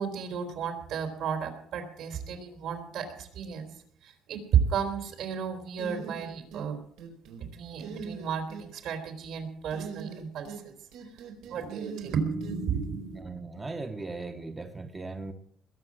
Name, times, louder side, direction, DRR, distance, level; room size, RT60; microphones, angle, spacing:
voice 1, 0.0-3.7 4.0-6.8 7.4-10.7 11.1-11.2 11.5-13.2, right 7 dB, 65° right, 6 dB, 3.7 m, -32 dB
sound 1, 5.8-6.7 7.0-7.4 7.8-8.6 9.7-10.6 10.9-12.6, right 6 dB, 90° right, 4.6 m, -41 dB
voice 2, 13.1-15.3, right 3 dB, 15° right, 5 dB, 1.1 m, -38 dB
21.0 x 7.4 x 7.5 m, 0.65 s
cardioid pair, 140°, 0 cm